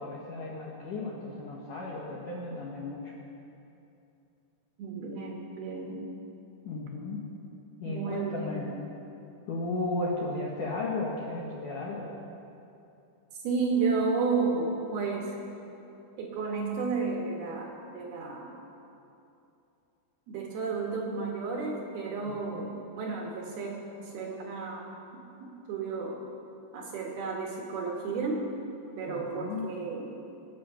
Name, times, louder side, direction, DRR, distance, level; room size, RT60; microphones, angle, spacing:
voice 1, 0.0-3.1 6.7-7.2 7.8-8.7 9.5-12.1 22.3-22.7 29.1-29.7, left 2 dB, 65° left, -4 dB, 2.1 m, -35 dB
voice 2, 4.8-6.0 7.8-8.6 13.4-15.3 16.2-18.5 20.3-24.9 25.4-26.2 26.7-28.5 29.0-30.1, right 4 dB, 65° right, -1 dB, 2.9 m, -32 dB
25.0 x 8.6 x 5.7 m, 2.7 s
omnidirectional pair, 5.6 m